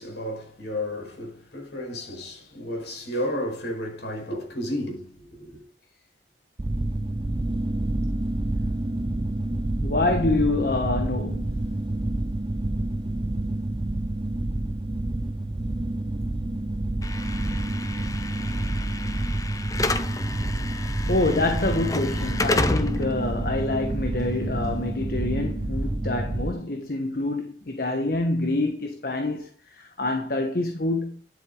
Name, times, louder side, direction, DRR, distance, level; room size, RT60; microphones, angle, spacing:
voice 1, 0.0-5.7, left 1 dB, 75° left, 5.2 m, -32 dB
sound 1, 6.6-26.5, right 1 dB, 30° right, 0.5 m, -28 dB
voice 2, 9.8-11.7 21.1-31.2, left 2 dB, 55° left, 1.4 m, -26 dB
Slam / Alarm, 17.0-25.1, left 2 dB, 20° left, 0.7 m, -31 dB
11.0 x 7.8 x 3.9 m
head